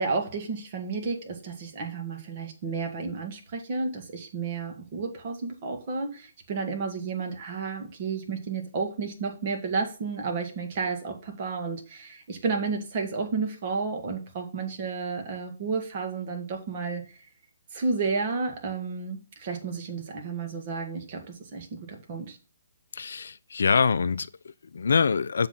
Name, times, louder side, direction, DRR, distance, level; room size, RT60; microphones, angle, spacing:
voice 1, 0.0-17.0 17.7-21.2 21.5-22.4, right 4 dB, 45° right, 1.8 m, -31 dB
voice 2, 22.9-25.5, left 5 dB, 70° left, 0.4 m, -25 dB
7.1 x 3.9 x 5.7 m
hypercardioid pair, 140°, 0 cm